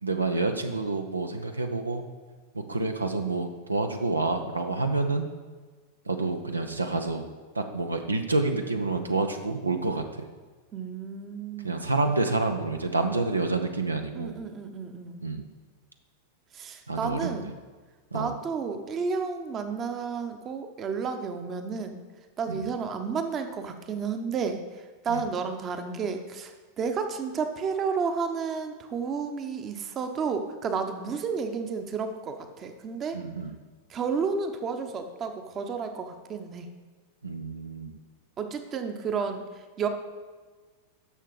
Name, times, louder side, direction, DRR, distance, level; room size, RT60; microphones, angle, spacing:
voice 1, 0.0-2.0 2.5-5.3 6.1-7.3 7.5-10.3 11.6-14.4 15.2-15.5 16.9-17.5 18.1-18.3 22.5-22.7 25.1-25.2 33.1-33.5 37.2-38.0, right 3 dB, 80° right, 5 dB, 0.6 m, -28 dB
voice 2, 10.7-11.9 14.1-15.2 16.5-17.5 18.1-22.0 22.4-33.2 33.9-36.7 38.4-39.9, right 5 dB, 25° right, 6 dB, 0.9 m, -32 dB
10.0 x 6.7 x 4.9 m, 1.4 s
figure-of-eight pair, 90°, 0 cm